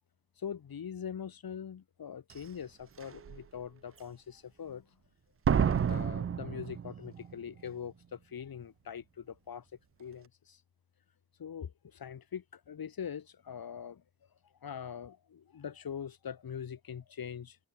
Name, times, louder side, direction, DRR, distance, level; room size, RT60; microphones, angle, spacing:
voice 1, 0.4-4.9 5.5-9.6 10.0-10.6 11.4-14.0 14.6-17.6, left 8 dB, 90° left, 1.5 m, -43 dB
Slam, 2.3-2.4 3.0-3.4 5.5-7.3 7.6-7.7, right 8 dB, 40° right, 0.5 m, -30 dB
cardioid pair, 45°, 35 cm